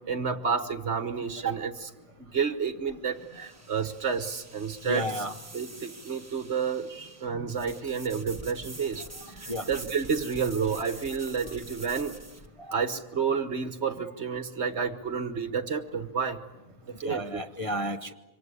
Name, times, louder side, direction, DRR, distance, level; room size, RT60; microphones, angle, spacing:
voice 1, 0.1-1.9 2.2-5.2 5.5-6.9 7.2-9.0 9.3-12.1 12.7-16.4 16.9-17.4, right 6 dB, 45° right, 10 dB, 1.4 m, -30 dB
sound 1, 2.1-12.5, right 2 dB, 10° right, 1.1 m, -46 dB
voice 2, 4.8-5.4 6.9-7.1 9.2-9.7 12.6-12.7 17.0-18.1, equal, 25° left, 5 dB, 0.8 m, -33 dB
27.0 x 25.0 x 8.3 m, 1.1 s
omnidirectional pair, 1.7 m